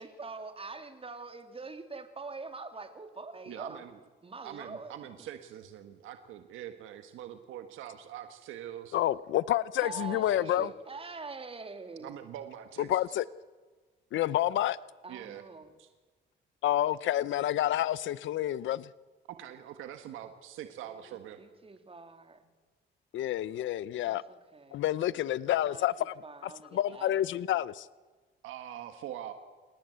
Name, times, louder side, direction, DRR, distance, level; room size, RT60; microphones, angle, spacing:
voice 1, 0.0-3.8 4.2-5.3 9.8-12.1 15.0-15.7 20.9-22.5 24.0-24.8 25.5-27.2, right 3 dB, 30° right, 3.2 m, -44 dB
voice 2, 3.5-3.9 4.4-9.0 10.0-10.7 12.0-13.2 15.1-15.4 15.8-15.9 19.3-21.4 28.4-29.3, right 11 dB, 90° right, 1.7 m, -44 dB
voice 3, 8.9-10.7 12.9-13.2 14.1-14.8 16.6-18.9 23.1-24.2 24.7-26.1 26.7-27.9, left 13 dB, 75° left, 0.7 m, -29 dB
28.5 x 19.5 x 8.0 m
cardioid pair, 90°, 20 cm